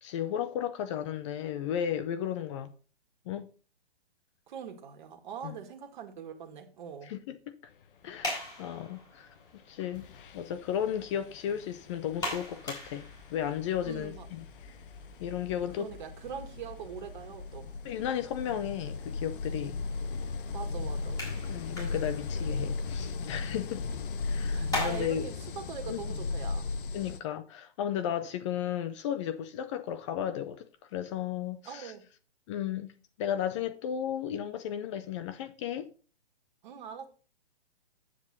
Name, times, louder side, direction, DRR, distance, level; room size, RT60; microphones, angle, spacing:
voice 1, 0.0-2.7 3.3-3.5 5.4-5.5 7.0-7.4 8.0-9.3 9.7-10.0 10.3-14.8 15.2-15.9 17.8-19.8 21.5-23.8 24.2-25.3 25.9-26.0 26.9-31.9 32.5-32.9 33.2-35.9, left 9 dB, 30° left, 0.6 m, -34 dB
voice 2, 4.5-7.1 13.8-14.3 15.8-17.7 20.5-21.3 24.5-26.7 31.7-32.1 36.6-37.1, right 7 dB, 45° right, 1.9 m, -42 dB
sound 1, 7.9-25.1, left 1 dB, 10° left, 4.3 m, -43 dB
sound 2, 9.4-9.6 9.9-27.2, left 3 dB, 55° left, 1.0 m, -37 dB
9.5 x 7.6 x 4.0 m
hypercardioid pair, 130°, 31 cm